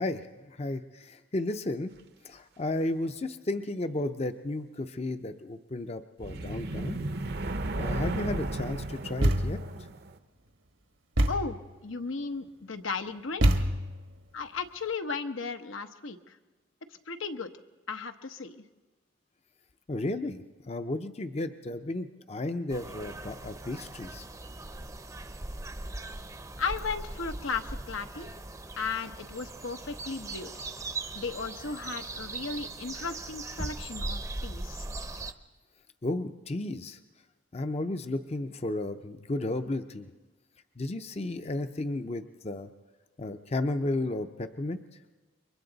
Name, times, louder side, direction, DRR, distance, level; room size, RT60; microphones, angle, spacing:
voice 1, 0.0-1.9 2.2-7.0 7.7-9.6 19.9-24.3 36.0-37.0 37.5-40.1 40.8-42.7 43.2-44.8, left 2 dB, 30° left, 9 dB, 0.6 m, -33 dB
sound 1, 6.2-10.2, right 2 dB, 55° right, 0.8 m, -34 dB
Thump thud, 9.2-9.8 11.2-11.6 13.4-14.1, right 1 dB, 75° right, 1.4 m, -25 dB
voice 2, 11.8-13.4 14.3-16.4 17.1-17.5 17.9-18.6 26.6-28.3 28.8-30.5 31.1-34.9, left 4 dB, 85° left, 7 dB, 1.0 m, -35 dB
sound 2, 22.7-35.3, right 2 dB, 15° right, 0.7 m, -39 dB
28.5 x 23.0 x 4.0 m, 1.2 s
head